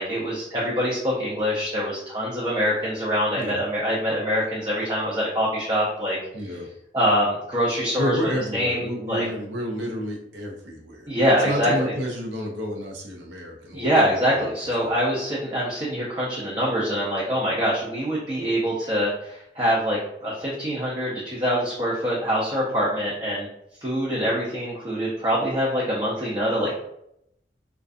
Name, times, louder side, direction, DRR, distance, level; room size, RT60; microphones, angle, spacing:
voice 1, 0.0-6.2 6.9-8.2 8.5-9.2 11.1-11.9 13.7-23.5 23.8-26.7, equal, 25° right, -6 dB, 0.5 m, -24 dB
voice 2, 6.3-6.7 8.0-11.1 11.4-14.5 14.8-15.0, equal, 90° right, 0 dB, 0.6 m, -30 dB
2.5 x 2.3 x 2.4 m, 0.77 s
head